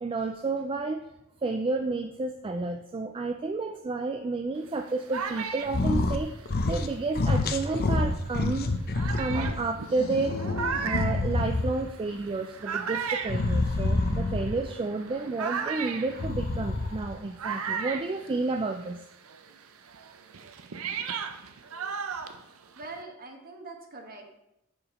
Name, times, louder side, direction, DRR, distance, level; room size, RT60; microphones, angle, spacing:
voice 1, 0.0-1.0 1.4-8.7 9.2-10.4 10.8-19.0, right 3 dB, 25° right, 6 dB, 0.3 m, -31 dB
sound 1, 4.6-7.7 8.3-8.4 8.9-19.0 19.2-23.0, right 6 dB, 80° right, 0.6 m, -36 dB
sound 2, 5.7-6.2 6.4-6.9 7.1-9.5 10.0-11.9 13.2-14.7 16.1-17.1, left 2 dB, 45° left, 0.6 m, -27 dB
voice 2, 22.8-24.3, right 3 dB, 45° right, 4 dB, 1.2 m, -43 dB
7.3 x 4.9 x 5.4 m, 0.86 s
head